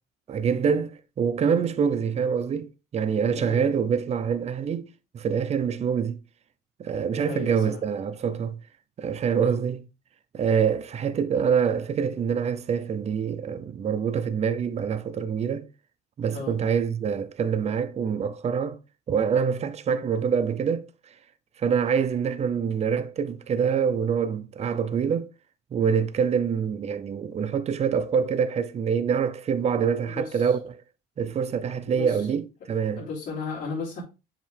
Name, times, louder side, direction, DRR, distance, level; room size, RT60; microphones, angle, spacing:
voice 1, 0.3-4.8 5.1-6.2 6.8-8.6 9.0-9.9 10.3-15.7 16.2-18.8 19.1-20.9 21.6-25.3 25.7-30.8 31.2-33.0, right 7 dB, 40° right, 0.7 m, -25 dB
voice 2, 3.3-3.7 7.2-7.8 9.3-9.6 16.3-16.6 30.0-30.5 32.0-32.2 33.0-34.0, left 5 dB, 55° left, 3.6 m, -35 dB
7.5 x 5.1 x 3.5 m
cardioid pair, 110°, 17 cm